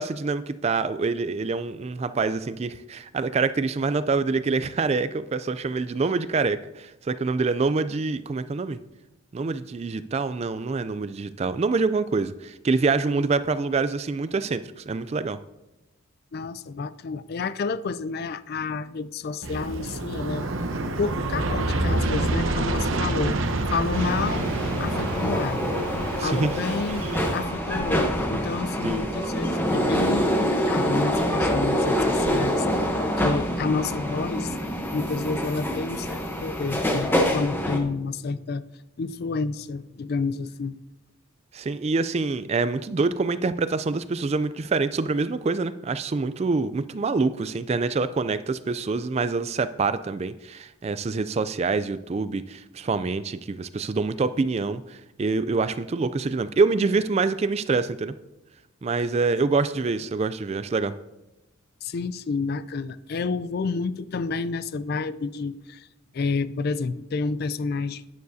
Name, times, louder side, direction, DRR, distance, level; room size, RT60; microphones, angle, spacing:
voice 1, 0.0-8.8 9.3-15.4 26.2-26.5 28.8-29.1 41.5-58.1 58.8-60.9, right 4 dB, 30° right, 13 dB, 0.3 m, -26 dB
voice 2, 16.3-20.5 20.8-23.4 23.7-25.7 26.2-27.1 27.3-32.7 33.2-34.6 34.9-38.6 39.0-40.8 61.8-65.9 66.1-68.0, left 4 dB, 45° left, 15 dB, 0.3 m, -30 dB
Aircraft, 19.4-27.4, right 2 dB, 65° right, 0.8 m, -27 dB
sound 1, 23.9-37.8, equal, 10° left, 0.8 m, -26 dB
sound 2, 24.8-34.2, right 3 dB, 85° right, 2.0 m, -44 dB
11.0 x 9.3 x 2.7 m, 0.96 s
head